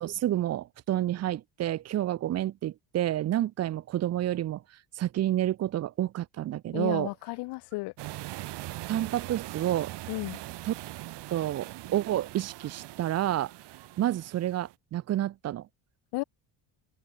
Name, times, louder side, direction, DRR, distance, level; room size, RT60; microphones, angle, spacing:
voice 1, 0.0-4.6 5.0-7.1 8.9-9.9 10.6-10.7 11.3-13.5 14.0-15.7, right 13 dB, 35° right, 0.6 m, -29 dB
voice 2, 6.7-7.9 10.1-10.4 16.1-16.2, left 23 dB, 65° left, 0.6 m, -33 dB
sound 1, 8.0-14.7, right 17 dB, 65° right, 4.0 m, -41 dB
open air
cardioid pair, 165°, 45 cm